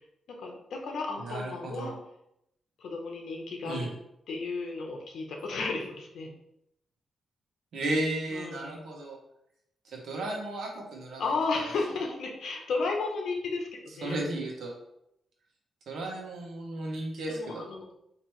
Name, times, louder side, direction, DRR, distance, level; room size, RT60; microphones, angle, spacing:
voice 1, 0.4-1.9 2.8-3.9 4.3-6.3 8.3-8.8 11.2-14.2 17.3-17.9, left 3 dB, 80° left, 1 dB, 0.8 m, -33 dB
voice 2, 1.2-1.9 3.6-3.9 7.7-9.2 9.8-11.3 14.0-14.7 15.9-17.6, right 1 dB, 75° right, -1 dB, 1.1 m, -34 dB
4.6 x 2.9 x 3.2 m, 0.79 s
wide cardioid pair, 155°, 0 cm